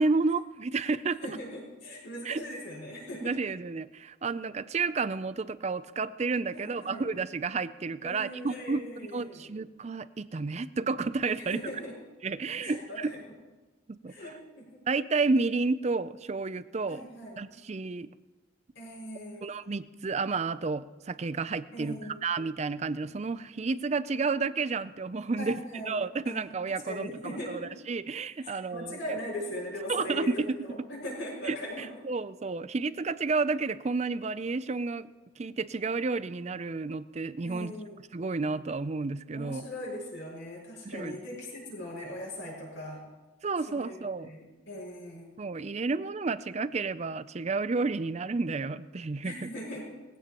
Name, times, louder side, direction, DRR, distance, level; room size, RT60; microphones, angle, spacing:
voice 1, 0.0-1.2 2.2-2.4 3.2-8.8 9.1-11.6 12.2-13.1 13.9-14.1 14.9-17.0 17.4-18.1 19.4-25.6 25.9-27.1 27.5-27.6 27.9-29.0 29.9-30.6 31.5-37.7 38.1-39.6 40.9-41.2 43.4-44.3 45.4-49.5, right 4 dB, 30° right, 15 dB, 0.4 m, -31 dB
voice 2, 1.2-3.3 6.5-7.1 8.0-9.5 11.4-11.9 12.6-13.2 14.1-14.8 16.9-17.4 18.7-19.4 21.7-22.2 25.4-26.0 26.2-26.4 26.8-27.7 28.4-31.9 37.4-38.0 39.3-43.0 43.7-45.3 49.2-49.9, left 1 dB, 60° left, -3 dB, 6.0 m, -40 dB
20.0 x 15.5 x 3.0 m, 1.2 s
head